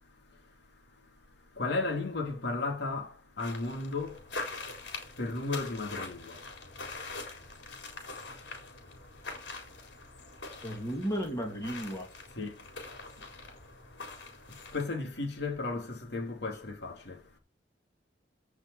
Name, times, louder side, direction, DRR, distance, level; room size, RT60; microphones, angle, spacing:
voice 1, 1.6-3.1 3.4-4.2 5.2-6.4 12.4-12.5 14.7-17.2, left 3 dB, 65° left, 3.1 m, -34 dB
sound 1, 3.4-15.0, left 3 dB, 85° left, 4.1 m, -44 dB
voice 2, 10.6-12.1, equal, 20° left, 2.6 m, -34 dB
15.5 x 5.9 x 5.0 m
head